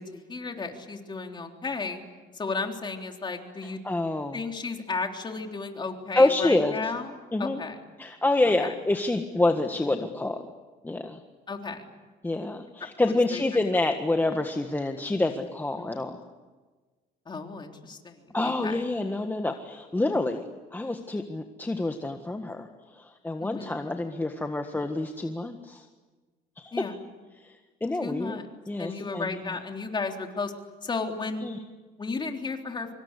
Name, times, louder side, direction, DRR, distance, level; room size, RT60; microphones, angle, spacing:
voice 1, 0.0-2.0 2.3-3.8 4.3-7.1 7.4-7.8 8.6-8.7 11.5-11.8 12.8-12.9 13.3-13.4 15.7-15.9 17.3-18.8 23.4-23.8 26.7-27.0 28.0-28.5 28.8-30.5 30.8-31.4 32.0-32.9, left 4 dB, 25° left, 3 dB, 3.6 m, -34 dB
voice 2, 3.8-4.4 6.1-6.8 7.3-7.6 8.0-10.4 10.8-11.2 12.2-16.2 18.3-20.4 20.7-22.7 22.9-25.8 26.6-26.7 27.4-27.5 27.8-28.4 28.7-29.4 31.4-31.6, left 2 dB, 10° left, 5 dB, 1.6 m, -27 dB
25.5 x 24.5 x 8.4 m, 1.3 s
cardioid pair, 110°, 17 cm